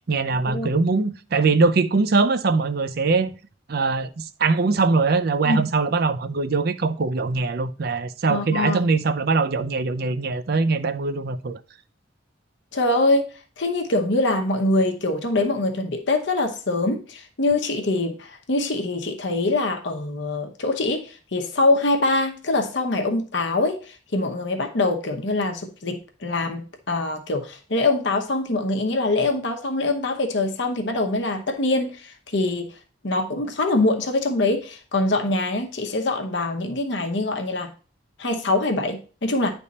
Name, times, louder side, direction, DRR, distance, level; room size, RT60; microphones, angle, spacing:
voice 1, 0.1-3.3 3.7-11.6, right 4 dB, 55° right, 0.5 m, -22 dB
voice 2, 8.3-8.9 12.7-13.3 13.6-32.7 33.0-37.7 38.2-39.5, left 2 dB, 65° left, 0.9 m, -24 dB
9.7 x 3.5 x 4.1 m
head